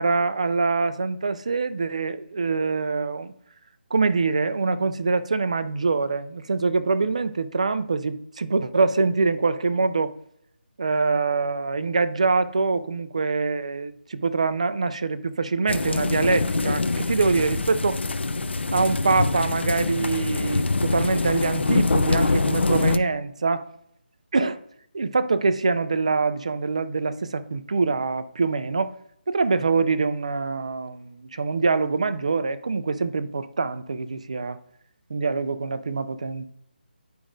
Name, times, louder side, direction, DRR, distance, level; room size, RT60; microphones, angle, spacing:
voice 1, 0.0-3.3 3.9-10.1 10.8-18.0 18.7-23.7 24.3-24.6 24.9-28.9 29.3-34.6 35.1-36.4, right 4 dB, 35° right, 0.4 m, -24 dB
sound 1, 15.7-23.0, left 3 dB, 85° left, 0.5 m, -24 dB
9.1 x 4.9 x 2.5 m
hypercardioid pair, 175°, 6 cm